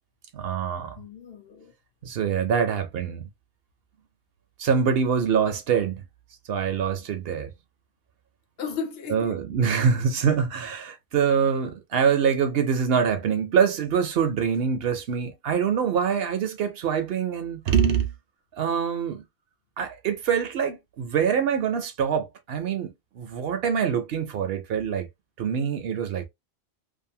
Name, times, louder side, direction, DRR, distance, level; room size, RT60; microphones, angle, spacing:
voice 1, 0.3-1.0 2.0-3.3 4.6-6.0 6.5-7.5 9.1-18.1 18.6-19.2 19.8-25.1 25.4-26.3, right 7 dB, 65° right, 0.7 m, -25 dB
voice 2, 1.0-1.7 8.6-9.4, left 5 dB, 65° left, 0.9 m, -35 dB
2.5 x 2.5 x 2.6 m
omnidirectional pair, 1.2 m